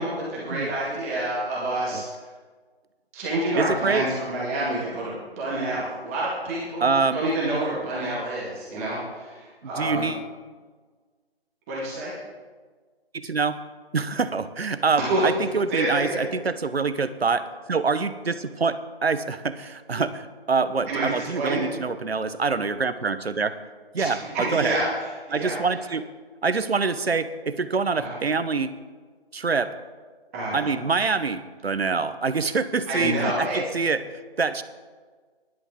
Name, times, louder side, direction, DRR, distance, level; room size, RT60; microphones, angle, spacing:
voice 1, 0.0-2.0 3.1-10.0 11.7-12.1 15.0-15.2 15.7-16.2 20.9-21.6 24.0-25.6 27.9-28.2 30.3-30.7 32.9-33.6, right 1 dB, 15° right, -6 dB, 2.0 m, -28 dB
voice 2, 3.6-4.0 6.8-7.2 9.8-10.2 13.1-13.6 13.9-23.6 23.9-24.8 25.3-26.0 26.4-28.7 29.3-29.7 30.5-34.6, right 4 dB, 75° right, 12 dB, 1.1 m, -25 dB
18.0 x 11.0 x 3.8 m, 1.4 s
figure-of-eight pair, 160°, 31 cm